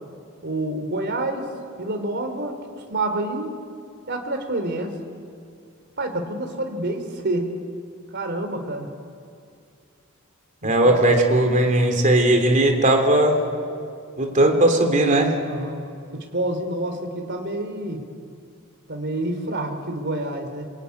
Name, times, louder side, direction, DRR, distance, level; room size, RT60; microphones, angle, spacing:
voice 1, 0.4-1.5 1.8-2.6 2.9-3.5 4.1-5.0 6.0-7.5 8.1-8.9 10.6-11.0 15.5-15.8 16.1-18.1 18.9-20.7, right 1 dB, 50° right, 5 dB, 3.3 m, -28 dB
voice 2, 10.6-13.5 14.2-15.4, right 1 dB, 35° right, 4 dB, 3.4 m, -18 dB
25.5 x 23.5 x 9.6 m, 2.5 s
head